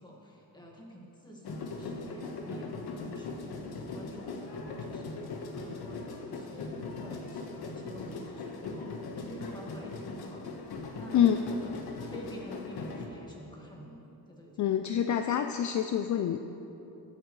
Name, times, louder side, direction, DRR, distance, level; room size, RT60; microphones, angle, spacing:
voice 1, 0.0-5.2 5.6-10.5 10.9-11.8 12.1-15.0, equal, 10° left, -2 dB, 1.8 m, -49 dB
sound 1, 1.4-13.1, left 3 dB, 70° left, 1.4 m, -40 dB
voice 2, 14.6-16.4, left 9 dB, 50° left, 7 dB, 0.5 m, -26 dB
22.5 x 8.7 x 3.2 m, 3.0 s
cardioid pair, 155°, 39 cm